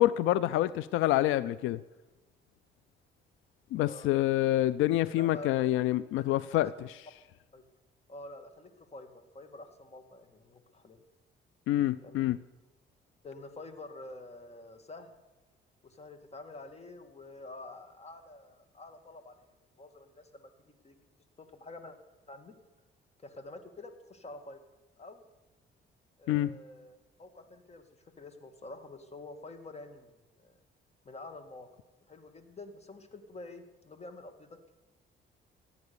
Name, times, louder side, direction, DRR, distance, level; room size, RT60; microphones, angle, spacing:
voice 1, 0.0-1.8 3.7-6.7 11.7-12.4 26.3-26.5, left 14 dB, 90° left, 18 dB, 0.4 m, -27 dB
voice 2, 3.7-4.1 5.2-5.7 6.2-6.3 6.5-6.6 7.5-7.6 8.1-9.1 9.3-11.0 12.0-12.2 13.2-15.1 15.8-19.3 19.8-20.5 20.8-20.9 21.4-22.0 22.3-22.5 23.2-24.6 25.0-25.2 26.2-27.8 28.2-30.1 30.4-30.5 31.0-31.7 32.1-34.5, left 2 dB, 35° left, 9 dB, 1.9 m, -47 dB
15.0 x 9.4 x 6.9 m, 1.2 s
cardioid pair, 90°, 20 cm